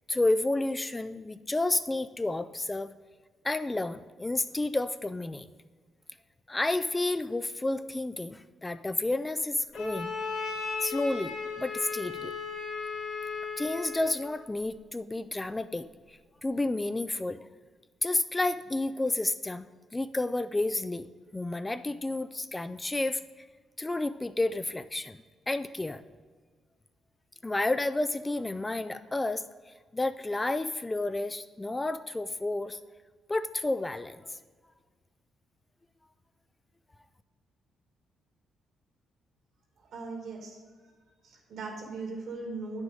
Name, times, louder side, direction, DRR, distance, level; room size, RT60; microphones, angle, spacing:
voice 1, 0.1-2.9 3.4-5.5 6.5-10.1 10.8-12.4 13.6-17.4 18.0-19.7 19.9-21.1 21.3-23.5 23.8-25.2 25.5-26.0 27.4-32.8 33.3-34.4, left 2 dB, 15° left, 12 dB, 0.3 m, -31 dB
Bowed string instrument, 9.7-14.3, left 5 dB, 85° left, 2.2 m, -36 dB
voice 2, 39.8-40.6 41.2-42.8, right 3 dB, 70° right, 0 dB, 2.5 m, -39 dB
9.4 x 6.1 x 3.8 m, 1.5 s
cardioid pair, 90°, 0 cm